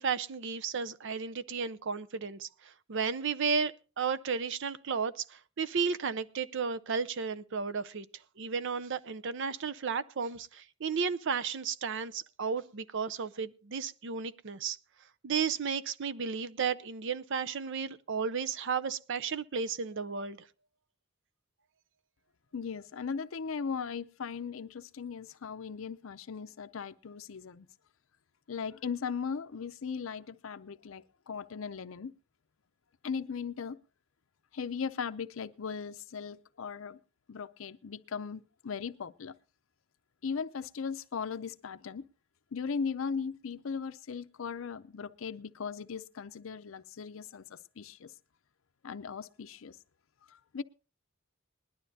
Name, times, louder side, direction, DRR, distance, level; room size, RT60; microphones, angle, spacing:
voice 1, 0.0-8.1 8.4-14.8 15.2-20.4, right 5 dB, 65° right, 0.6 m, -33 dB
voice 2, 22.5-27.7 28.5-32.1 33.0-33.8 34.5-37.0 37.3-39.3 40.2-42.1 42.5-48.1 48.8-49.8 50.3-50.6, left 6 dB, 70° left, 0.6 m, -38 dB
20.5 x 12.0 x 2.7 m
head